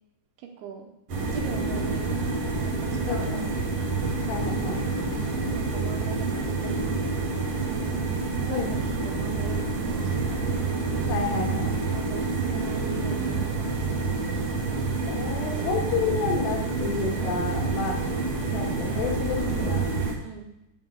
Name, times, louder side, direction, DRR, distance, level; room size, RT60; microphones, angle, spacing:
voice 1, 0.4-0.9 1.3-3.6 5.6-7.9 8.4-10.5 11.9-13.9 20.2-20.5, right 7 dB, 75° right, 3 dB, 3.1 m, -41 dB
sound 1, 1.1-20.1, right 3 dB, 60° right, 1.7 m, -28 dB
voice 2, 3.1-3.5 4.3-4.8 8.5-8.8 11.1-11.8 15.0-18.0 18.5-19.9, left 5 dB, 85° left, 0 dB, 4.1 m, -30 dB
9.3 x 5.1 x 7.7 m, 0.87 s
omnidirectional pair, 5.7 m